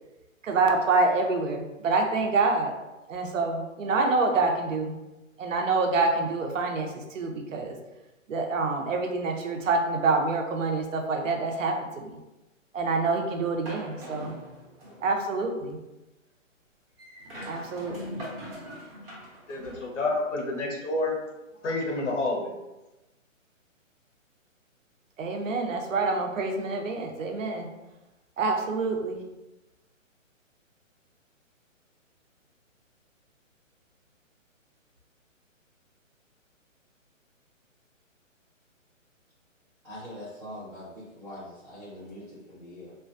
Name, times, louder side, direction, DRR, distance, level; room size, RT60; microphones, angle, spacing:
voice 1, 0.4-2.8 3.1-5.0 5.4-7.8 8.3-12.2 12.7-14.4 15.0-15.8 17.4-18.3 25.2-27.7 28.4-29.2, right 3 dB, 70° right, 3 dB, 0.6 m, -27 dB
sound 1, 13.7-15.1 17.0-19.9, equal, 45° right, 1.0 m, -41 dB
voice 2, 19.5-21.2 21.6-22.5, left 2 dB, 65° left, 0 dB, 0.8 m, -29 dB
voice 3, 39.8-42.9, left 1 dB, 15° right, -16 dB, 0.9 m, -43 dB
2.4 x 2.2 x 2.4 m, 1.0 s
hypercardioid pair, 160°, 40 cm